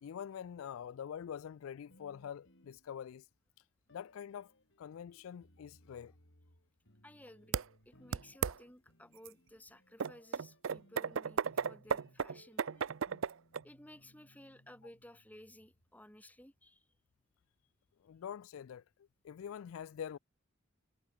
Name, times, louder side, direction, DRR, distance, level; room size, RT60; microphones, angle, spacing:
voice 1, 0.0-3.2 3.9-4.5 4.8-6.1 18.0-18.8 19.2-20.2, left 8 dB, 90° left, 0.3 m, -45 dB
sound 1, 1.9-3.4 3.9-16.1, left 1 dB, 60° left, 6.6 m, -66 dB
voice 2, 7.0-12.9 13.6-16.9, left 1 dB, 10° left, 3.8 m, -57 dB
sound 2, 7.5-7.6 8.1-8.6 9.3-9.4 10.0-13.6, right 6 dB, 70° right, 0.5 m, -34 dB
head